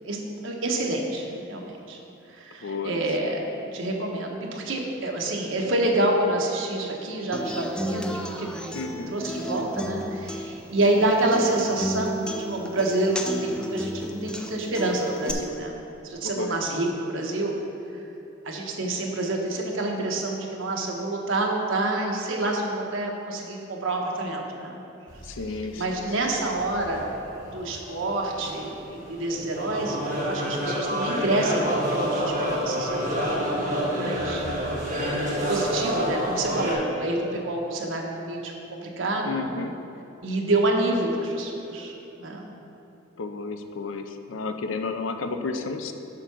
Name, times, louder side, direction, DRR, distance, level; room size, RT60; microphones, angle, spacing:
voice 1, 0.0-2.0 2.3-3.5 3.7-17.6 18.4-24.8 25.8-27.1 27.4-34.4 35.5-39.5 40.2-42.5, right 2 dB, 75° right, 0 dB, 1.1 m, -28 dB
voice 2, 2.6-3.0 8.7-9.1 16.2-16.6 25.2-26.4 39.2-39.8 43.2-45.9, left 4 dB, 70° left, 7 dB, 0.5 m, -32 dB
Human voice / Acoustic guitar, 7.3-15.3, equal, 5° left, 0.3 m, -33 dB
sound 1, 25.1-25.7 26.0-26.1 26.5-36.7, equal, 40° right, 1.4 m, -28 dB
7.6 x 4.6 x 6.0 m, 3.0 s
head